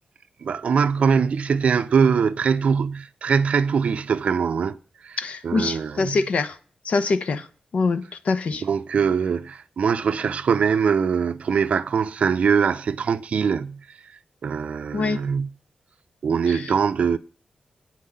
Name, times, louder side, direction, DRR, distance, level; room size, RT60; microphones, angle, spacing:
voice 1, 0.4-4.8 5.0-5.2 5.4-6.2 8.6-13.8 14.4-15.5 16.2-17.2, right 6 dB, 55° right, 0.6 m, -22 dB
voice 2, 5.2-6.6 6.8-7.5 7.7-8.6 14.9-15.2 16.5-16.7, left 4 dB, 60° left, 0.9 m, -24 dB
9.3 x 5.9 x 8.2 m
wide cardioid pair, 155°, 3 cm